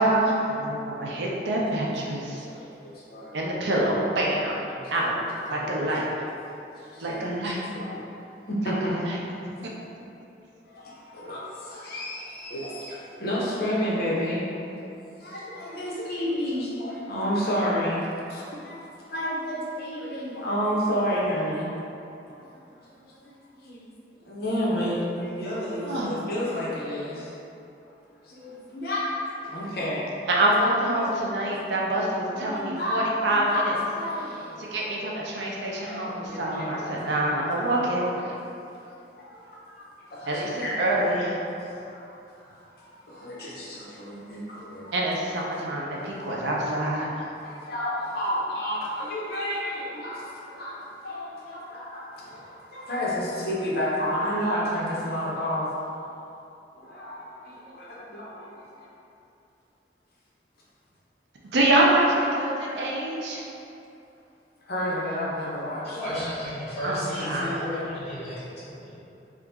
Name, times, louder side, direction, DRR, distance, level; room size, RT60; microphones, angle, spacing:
voice 1, 0.0-2.5 3.3-4.5 4.9-5.1 5.5-6.1 7.0-7.6 8.9-9.2 25.8-26.1 30.3-33.8 34.7-38.0 40.3-41.4 44.9-47.1 61.5-63.4 66.8-67.6, right 1 dB, 80° right, -3 dB, 0.5 m, -25 dB
voice 2, 2.2-3.4 4.7-5.1 5.4-5.8 6.7-8.0 8.5-9.1 10.7-14.4 15.2-21.7 22.2-22.6 23.2-23.9 24.2-27.3 28.2-29.1 29.4-30.1 31.0-31.5 32.3-33.0 33.3-35.3 35.9-38.1 38.7-40.8 41.6-45.0 45.9-46.4 47.1-55.7 56.7-58.9 62.6-62.8 64.6-66.2 67.2-67.9, equal, 60° left, -6 dB, 0.7 m, -31 dB
voice 3, 65.8-69.0, equal, 35° left, -11 dB, 1.3 m, -34 dB
2.8 x 2.4 x 3.5 m, 2.7 s
head